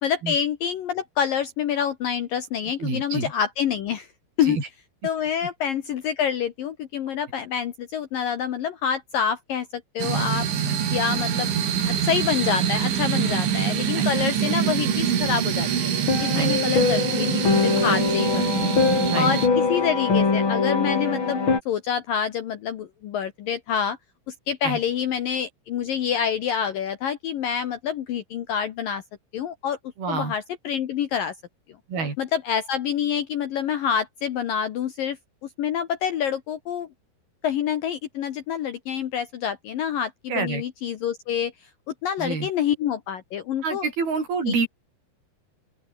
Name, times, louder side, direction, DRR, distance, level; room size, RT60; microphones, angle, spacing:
voice 1, 0.0-4.1 4.4-4.6 5.0-10.5 10.9-11.5 11.9-15.9 16.2-18.7 19.2-24.0 24.3-29.0 29.3-29.8 30.1-31.3 32.2-35.2 35.6-36.9 37.4-41.5 42.0-43.8 44.5-44.6, left 8 dB, 60° left, 2.6 m, -27 dB
voice 2, 2.8-3.3 4.4-4.7 10.6-10.8 13.2-13.4 13.9-14.1 16.3-16.5 17.9-18.1 19.1-19.3 24.6-24.8 30.0-30.3 31.9-32.2 40.3-40.6 42.2-42.5 43.6-44.7, right 4 dB, 55° right, 9.3 m, -28 dB
sound 1, 10.0-19.5, right 8 dB, 85° right, 5.9 m, -25 dB
sound 2, 16.1-21.6, left 4 dB, 30° left, 3.8 m, -22 dB
open air
omnidirectional pair, 5.3 m